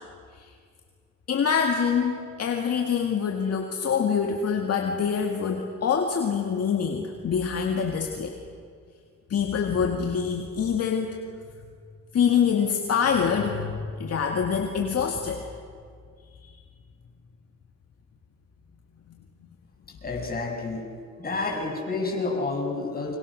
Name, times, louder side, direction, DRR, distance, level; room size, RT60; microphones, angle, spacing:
voice 1, 1.3-8.4 9.3-11.2 12.1-15.5 16.4-16.5 21.2-21.6, left 6 dB, 55° left, 3 dB, 2.1 m, -25 dB
voice 2, 20.0-20.9 21.2-23.2, left 3 dB, 30° left, 0 dB, 6.8 m, -29 dB
28.5 x 25.0 x 6.4 m, 2.1 s
cardioid pair, 90°, 30 cm